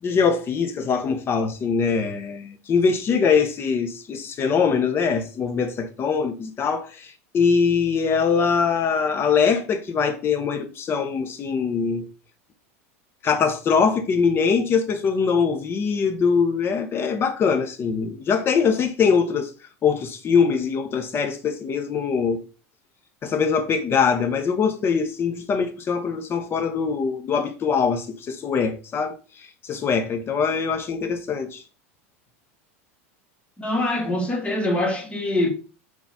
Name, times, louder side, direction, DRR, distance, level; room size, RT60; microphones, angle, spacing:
voice 1, 0.0-12.1 13.2-19.5 19.8-22.4 23.2-31.6, left 5 dB, 30° left, 0.7 m, -22 dB
voice 2, 33.6-35.5, left 1 dB, 15° left, 1.1 m, -24 dB
3.9 x 2.4 x 4.0 m
hypercardioid pair, 105°, 7 cm